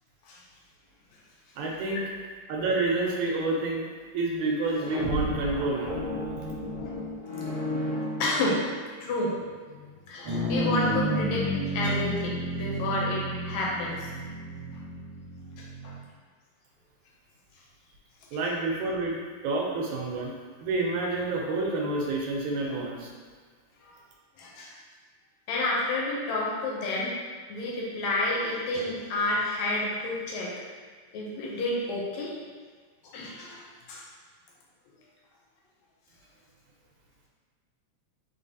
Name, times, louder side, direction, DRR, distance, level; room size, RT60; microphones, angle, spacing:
voice 1, 1.6-2.0 2.5-3.9 4.1-5.9 18.3-19.2 19.4-20.3 20.6-23.1, right 2 dB, 85° right, -1 dB, 2.0 m, -28 dB
sound 1, 4.6-8.9, equal, 45° left, 1.4 m, -33 dB
voice 2, 8.2-8.6 9.0-9.4 9.7-11.4 11.7-14.1 15.6-15.9 23.8-23.9 24.4-24.7 25.5-27.1 27.5-30.5 31.1-32.3 33.0-34.1, left 2 dB, 75° left, -4 dB, 2.0 m, -30 dB
sound 2, 10.2-16.0, right 1 dB, 60° right, 2.1 m, -31 dB
4.4 x 3.8 x 2.7 m, 1.5 s
omnidirectional pair, 3.4 m